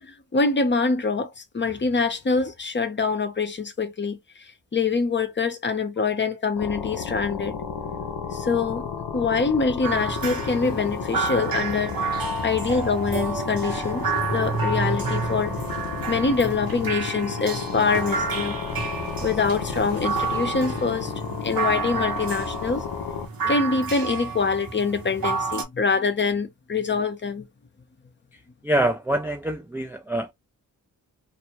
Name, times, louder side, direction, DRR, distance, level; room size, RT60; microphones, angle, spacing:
voice 1, 0.0-7.5 8.3-8.9 9.1-15.5 16.1-18.6 19.2-21.1 21.4-22.9 23.4-27.4, left 4 dB, 30° left, 0.6 m, -25 dB
sound 1, 6.6-23.3, left 7 dB, 70° left, 0.7 m, -32 dB
sound 2, 9.8-25.6, right 4 dB, 65° right, 1.1 m, -30 dB
voice 2, 28.6-30.3, right 1 dB, 5° right, 0.3 m, -25 dB
2.6 x 2.1 x 2.9 m
cardioid pair, 60°, 38 cm